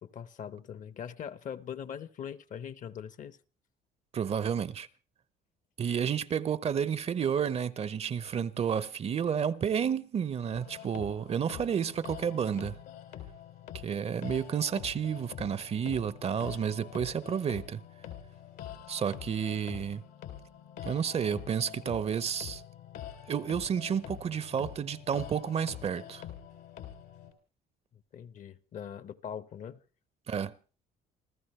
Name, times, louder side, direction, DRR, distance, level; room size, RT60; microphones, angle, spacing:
voice 1, 0.0-3.4 27.9-29.8, left 8 dB, 50° left, 1.0 m, -42 dB
voice 2, 4.1-4.9 5.8-12.8 13.8-17.8 18.9-20.0 20.8-22.6 23.3-26.2 30.3-30.5, right 7 dB, 40° right, 0.7 m, -31 dB
sound 1, 10.5-27.3, left 10 dB, 90° left, 3.6 m, -45 dB
28.0 x 14.5 x 3.2 m
cardioid pair, 110°, 17 cm